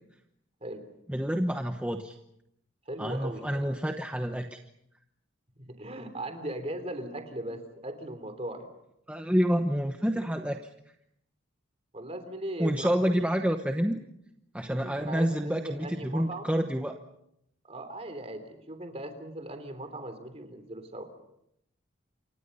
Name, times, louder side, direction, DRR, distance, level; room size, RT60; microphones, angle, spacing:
voice 1, 1.1-2.2 3.0-4.6 9.1-10.6 12.6-14.0 14.5-17.0, equal, 5° right, 4 dB, 1.0 m, -28 dB
voice 2, 2.9-3.8 5.6-8.7 11.9-13.1 14.7-16.5 17.7-21.1, right 1 dB, 30° right, 8 dB, 3.4 m, -38 dB
29.0 x 25.0 x 5.6 m, 0.78 s
head